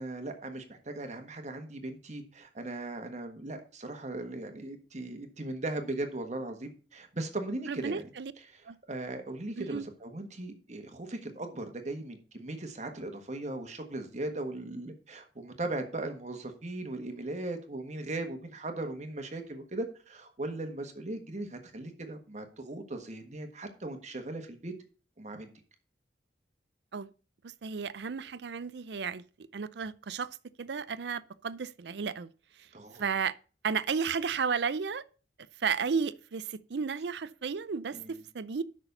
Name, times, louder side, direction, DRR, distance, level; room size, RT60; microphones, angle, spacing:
voice 1, 0.0-8.0 8.5-8.6 8.9-24.7 25.2-25.5 32.7-33.0 37.9-38.2, right 2 dB, 40° right, 1.5 m, -38 dB
voice 2, 7.7-8.3 8.7-8.8 9.6-9.8 26.9-27.1 27.4-30.3 30.6-32.3 33.0-33.4 33.6-35.0 35.6-38.6, right 6 dB, 70° right, 0.5 m, -33 dB
6.9 x 6.2 x 6.8 m
head